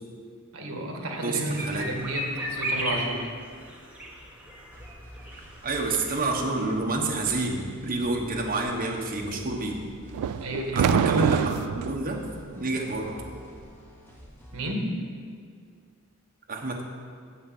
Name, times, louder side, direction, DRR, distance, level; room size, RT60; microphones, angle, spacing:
voice 1, 0.5-3.3 10.4-11.0 14.5-15.0, right 1 dB, 70° right, 2 dB, 1.6 m, -32 dB
voice 2, 1.2-1.8 5.6-9.8 10.7-12.3 12.6-13.2 16.5-16.8, right 2 dB, 40° right, 0 dB, 1.2 m, -28 dB
sound 1, 1.6-6.7 7.0-7.1 7.3-7.4, equal, 5° right, 1.2 m, -35 dB
sound 2, 4.7-14.7, equal, 10° left, 1.5 m, -47 dB
sound 3, 10.1-12.0, right 8 dB, 90° right, 0.3 m, -25 dB
7.7 x 6.4 x 7.4 m, 2.1 s
head